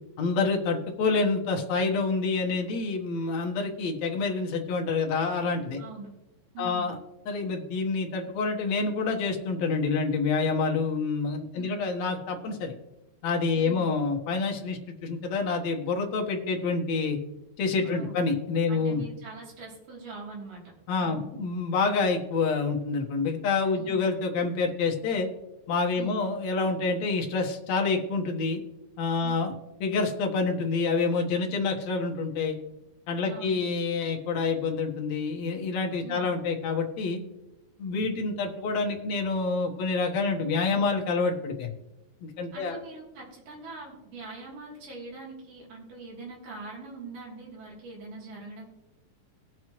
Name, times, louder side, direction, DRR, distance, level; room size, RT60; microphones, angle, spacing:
voice 1, 0.2-5.8 6.6-7.0 7.3-12.7 13.2-17.2 17.6-19.0 20.9-25.3 25.7-28.6 29.0-29.5 29.8-32.6 33.1-37.2 37.8-41.7 42.2-42.8, left 4 dB, 60° left, 2 dB, 2.2 m, -27 dB
voice 2, 5.8-6.1 6.5-6.9 11.5-11.8 13.5-13.9 17.8-18.2 18.7-20.6 21.0-21.3 23.8-24.0 26.0-26.2 29.2-29.3 33.2-33.6 36.0-36.3 42.5-48.6, right 3 dB, 65° right, -4 dB, 4.7 m, -42 dB
21.0 x 7.5 x 3.1 m, 0.96 s
omnidirectional pair, 4.2 m